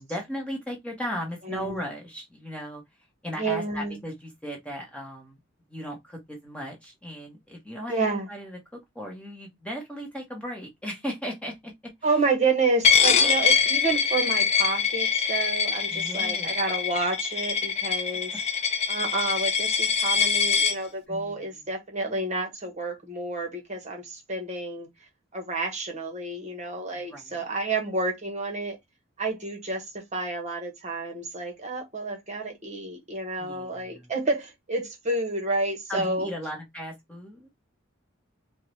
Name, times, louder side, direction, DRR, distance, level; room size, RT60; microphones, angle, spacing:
voice 1, 0.0-2.8 3.2-5.4 5.7-12.1 13.1-13.2 15.9-16.5 18.3-18.4 21.1-21.6 26.9-27.4 33.4-34.1 35.9-37.5, equal, 5° left, 1.0 m, -37 dB
voice 2, 1.5-1.8 3.4-4.0 7.9-8.3 12.0-18.3 18.9-24.9 25.3-28.8 29.2-36.3, right 3 dB, 35° right, 1.1 m, -29 dB
Coin (dropping), 12.8-20.8, left 6 dB, 30° left, 0.5 m, -24 dB
4.4 x 2.2 x 3.1 m
head